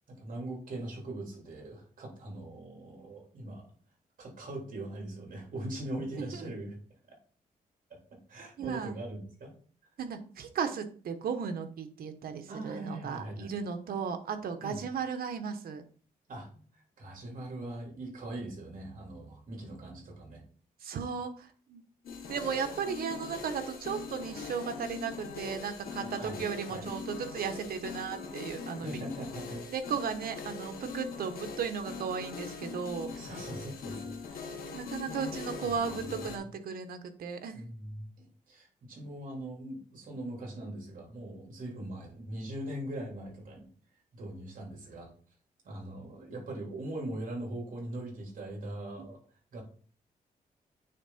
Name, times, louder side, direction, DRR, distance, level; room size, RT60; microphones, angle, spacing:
voice 1, 0.1-3.6 4.2-6.8 8.1-9.5 12.5-13.5 14.6-14.8 16.3-20.4 26.0-26.9 28.8-29.6 33.1-35.8 37.5-43.7 44.1-45.1 45.6-49.2 49.5-49.6, right 1 dB, 65° right, -1 dB, 3.7 m, -41 dB
voice 2, 8.6-9.0 10.0-15.8 20.8-21.8 22.3-28.9 29.7-33.1 34.7-37.6, right 6 dB, 80° right, 8 dB, 1.1 m, -35 dB
sound 1, 22.0-36.4, left 5 dB, 80° left, 1.5 m, -42 dB
9.1 x 3.7 x 4.2 m, 0.43 s
cardioid pair, 115°, 15 cm